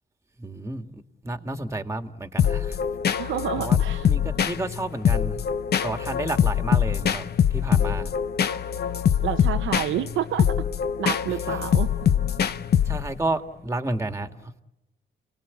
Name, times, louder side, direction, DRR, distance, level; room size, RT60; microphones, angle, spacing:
voice 1, 0.4-0.9 1.2-2.8 3.6-3.8 4.1-5.4 5.7-8.1 12.9-14.6, right 2 dB, 15° right, 2.0 m, -31 dB
sound 1, 2.4-13.3, left 8 dB, 55° left, 1.0 m, -24 dB
voice 2, 3.2-4.1 9.2-10.7 11.0-11.9, right 11 dB, 80° right, 1.0 m, -29 dB
30.0 x 19.0 x 8.4 m
cardioid pair, 90°, 20 cm